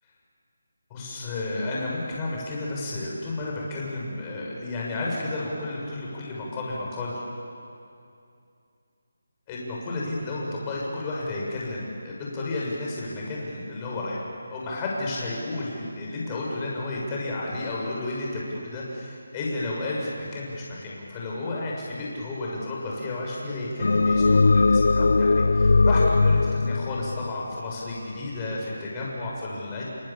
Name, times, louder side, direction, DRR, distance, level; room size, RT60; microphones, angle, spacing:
voice 1, 0.9-7.1 9.5-29.8, left 2 dB, 15° left, -4 dB, 6.5 m, -32 dB
sound 1, 23.8-28.2, left 3 dB, 65° left, 0.6 m, -20 dB
29.5 x 27.0 x 7.4 m, 2.5 s
figure-of-eight pair, 170°, 0 cm